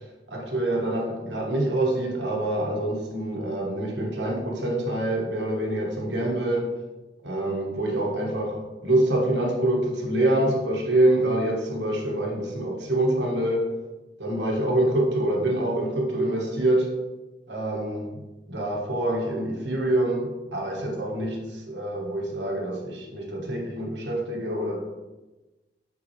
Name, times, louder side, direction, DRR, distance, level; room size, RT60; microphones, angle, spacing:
voice 1, 0.3-6.8 7.2-13.7 14.2-16.9 17.5-18.2 18.5-24.8, right 1 dB, 80° right, -1 dB, 1.4 m, -26 dB
8.4 x 3.9 x 3.1 m, 1.1 s
head